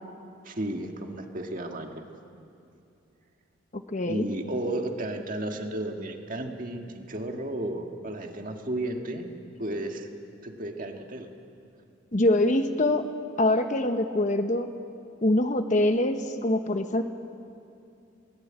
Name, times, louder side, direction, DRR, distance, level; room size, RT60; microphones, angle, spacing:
voice 1, 0.4-1.9 4.0-9.3 9.6-10.1 10.4-11.3, right 1 dB, 40° right, 3 dB, 1.8 m, -33 dB
voice 2, 3.7-4.3 12.1-13.1 13.4-14.7 15.2-17.0, left 1 dB, 40° left, 7 dB, 1.1 m, -24 dB
22.5 x 19.0 x 8.8 m, 2.6 s
head